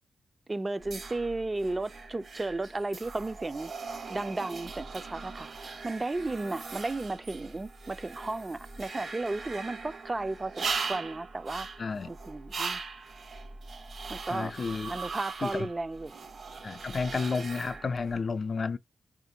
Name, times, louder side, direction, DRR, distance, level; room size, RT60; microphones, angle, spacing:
voice 1, 0.5-3.7 4.1-5.5 5.8-11.7 12.1-12.8 14.1-14.5 14.9-16.2, right 2 dB, 30° right, 0.3 m, -34 dB
sound 1, 0.8-18.2, right 4 dB, 70° right, 1.2 m, -40 dB
voice 2, 11.8-12.1 14.3-14.9 15.4-15.7 16.6-18.8, left 4 dB, 50° left, 0.3 m, -31 dB
4.9 x 2.5 x 2.7 m
cardioid pair, 60°, 0 cm